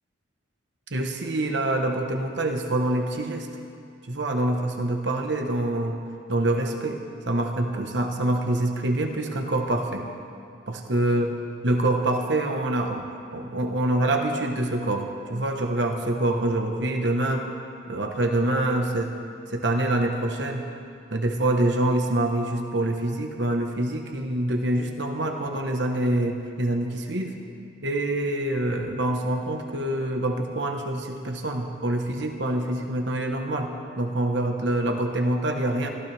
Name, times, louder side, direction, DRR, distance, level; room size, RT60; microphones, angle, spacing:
voice 1, 0.9-3.5 4.1-6.0 6.3-10.1 10.7-11.3 11.6-13.1 13.3-17.5 17.9-19.1 19.5-20.7 21.1-27.3 27.8-33.7 34.0-35.9, right 1 dB, 65° right, 3 dB, 1.2 m, -25 dB
24.5 x 15.5 x 3.5 m, 2.6 s
head